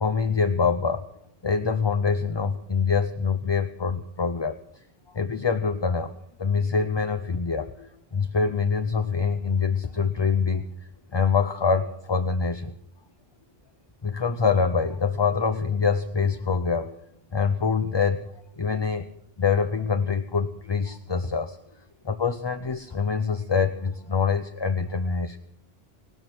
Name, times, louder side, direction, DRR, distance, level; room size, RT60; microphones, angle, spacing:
voice 1, 0.0-1.1 1.4-4.6 5.1-10.7 11.1-12.7 14.0-16.9 17.3-19.1 19.4-21.6 22.0-25.4, left 5 dB, 30° left, 8 dB, 0.6 m, -25 dB
18.0 x 13.0 x 6.2 m, 0.75 s
omnidirectional pair, 1.1 m